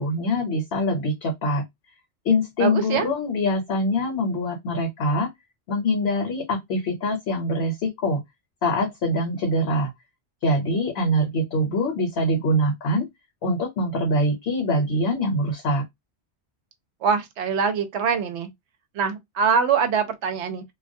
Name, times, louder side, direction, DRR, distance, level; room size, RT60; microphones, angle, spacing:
voice 1, 0.0-1.6 2.2-5.3 5.7-8.2 8.6-9.9 10.4-13.1 13.4-15.8, left 1 dB, 65° left, 0.9 m, -24 dB
voice 2, 2.6-3.1 17.0-18.5 18.9-20.6, right 6 dB, 75° right, 0.9 m, -23 dB
2.2 x 2.2 x 2.5 m
omnidirectional pair, 1.2 m